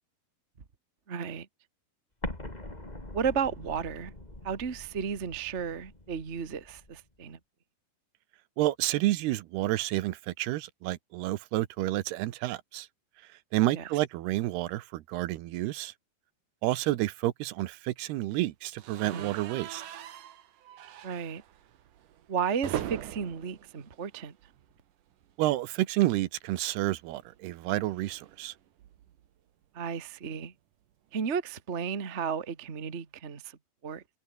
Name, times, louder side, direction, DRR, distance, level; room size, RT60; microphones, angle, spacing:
voice 1, 1.1-1.5 3.1-4.1 4.4-7.4 13.7-13.9 19.0-19.3 21.0-21.4 22.3-24.3 29.7-30.5 31.1-33.6 33.8-34.0, right 6 dB, 45° right, 0.9 m, -33 dB
Explosion, 2.2-7.0, left 1 dB, 10° left, 3.7 m, -43 dB
voice 2, 8.6-12.9 13.5-15.9 16.6-19.8 25.4-28.5, right 16 dB, 85° right, 3.0 m, -30 dB
sound 1, 18.8-24.8 25.1-25.3 25.6-25.7 26.9-29.3, right 11 dB, 60° right, 2.9 m, -42 dB
omnidirectional pair, 4.5 m